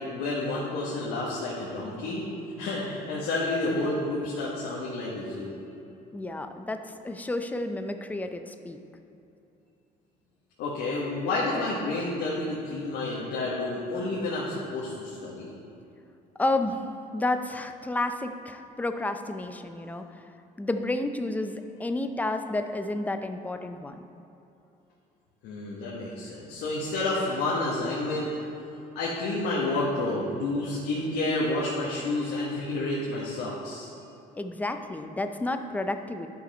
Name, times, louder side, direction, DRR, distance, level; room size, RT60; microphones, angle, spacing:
voice 1, 0.1-2.3 2.6-5.6 10.6-15.5 25.4-28.3 28.9-33.9, left 2 dB, 85° left, -6 dB, 1.5 m, -30 dB
voice 2, 6.1-8.8 16.4-16.8 17.1-20.2 20.6-24.0 34.4-36.3, left 2 dB, 10° left, 7 dB, 0.5 m, -31 dB
11.0 x 5.9 x 4.3 m, 2.8 s
cardioid pair, 110°, 17 cm